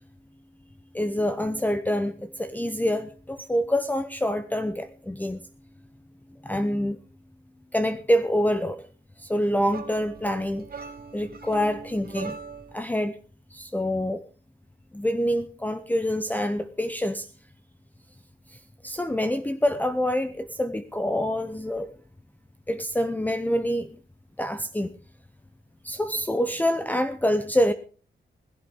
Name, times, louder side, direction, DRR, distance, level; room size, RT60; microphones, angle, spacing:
voice 1, 0.9-5.4 6.4-7.0 7.7-8.8 9.2-10.7 11.1-12.4 12.7-13.2 13.5-14.2 14.9-17.3 18.5-18.6 18.8-21.9 22.7-23.9 24.4-24.9 25.8-27.7, equal, 10° left, 10 dB, 0.8 m, -26 dB
sound 1, 9.7-12.8, right 5 dB, 50° right, 1.8 m, -40 dB
18.0 x 15.0 x 3.6 m, 0.39 s
wide cardioid pair, 120°, 19 cm